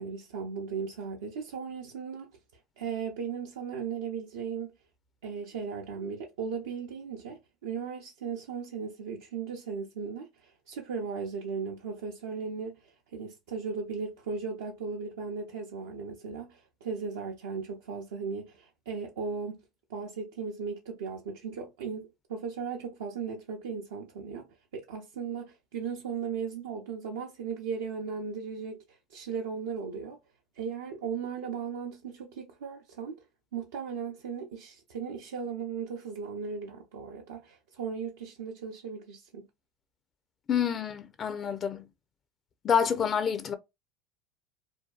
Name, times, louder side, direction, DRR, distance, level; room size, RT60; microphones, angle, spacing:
voice 1, 0.0-2.3 2.8-4.7 5.2-19.6 19.9-24.5 24.7-30.2 30.6-33.2 33.5-39.5, right 5 dB, 85° right, 0.5 m, -37 dB
voice 2, 40.5-41.9 42.6-43.5, left 7 dB, 40° left, 0.4 m, -28 dB
2.6 x 2.2 x 2.2 m
hypercardioid pair, 90°, 0 cm